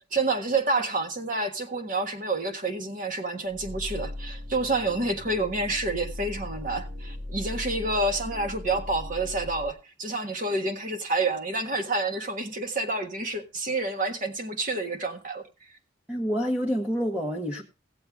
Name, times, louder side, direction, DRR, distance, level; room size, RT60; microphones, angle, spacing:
voice 1, 0.0-15.5, right 2 dB, 45° right, 1.5 m, -28 dB
sound 1, 3.5-9.7, left 1 dB, 85° right, 2.1 m, -38 dB
voice 2, 16.1-17.6, equal, 5° right, 1.1 m, -27 dB
16.5 x 7.7 x 3.5 m
head